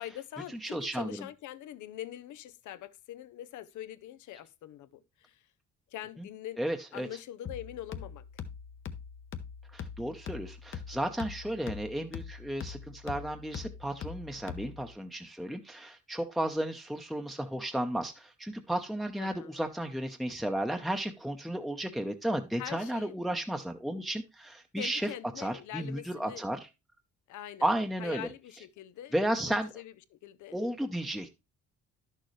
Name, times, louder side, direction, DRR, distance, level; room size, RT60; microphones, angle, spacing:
voice 1, 0.0-5.4 5.9-6.6 6.9-8.3 19.2-19.6 22.6-23.1 24.8-26.5 27.3-27.7 28.0-29.2 29.4-30.6, left 12 dB, 75° left, 0.7 m, -43 dB
voice 2, 0.6-1.2 6.2-6.3 6.6-7.1 9.7-25.1 25.4-26.7 27.6-28.3 29.1-29.7 30.5-31.3, right 1 dB, ahead, 0.8 m, -33 dB
sound 1, 7.5-15.0, left 7 dB, 40° left, 0.9 m, -43 dB
10.5 x 6.6 x 3.2 m
cardioid pair, 90°, 30 cm